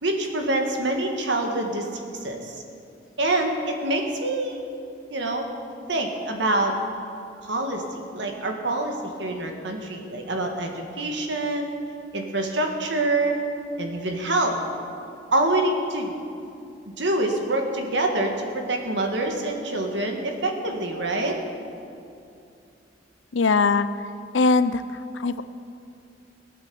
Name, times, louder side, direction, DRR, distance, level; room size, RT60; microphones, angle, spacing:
voice 1, 0.0-1.9 2.2-2.6 3.2-4.6 5.1-5.5 5.9-6.8 7.4-11.7 12.1-13.4 13.8-14.6 15.3-16.1 17.0-21.4, right 2 dB, 70° right, 3 dB, 1.9 m, -26 dB
voice 2, 23.3-23.9 24.3-25.4, left 4 dB, 90° left, 13 dB, 0.6 m, -21 dB
19.0 x 8.8 x 7.1 m, 2.5 s
head